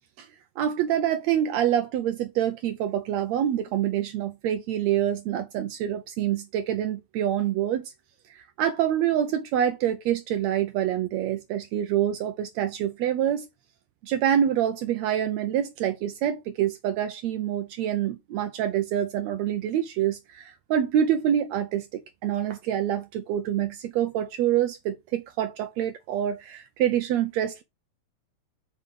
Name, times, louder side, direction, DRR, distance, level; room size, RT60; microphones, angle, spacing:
voice 1, 0.6-7.9 8.3-13.5 14.0-27.6, right 10 dB, 90° right, 1.5 m, -26 dB
5.4 x 3.7 x 4.8 m
omnidirectional pair, 3.9 m